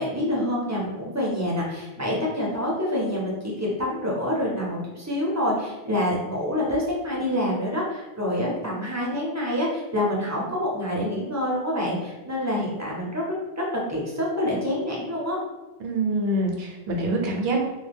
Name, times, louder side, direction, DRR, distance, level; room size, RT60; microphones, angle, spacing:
voice 1, 0.0-13.3 13.6-15.4, left 1 dB, 25° right, -4 dB, 0.4 m, -27 dB
voice 2, 15.8-17.6, right 2 dB, 70° right, 1 dB, 0.8 m, -25 dB
2.2 x 2.2 x 3.3 m, 1.1 s
omnidirectional pair, 1.1 m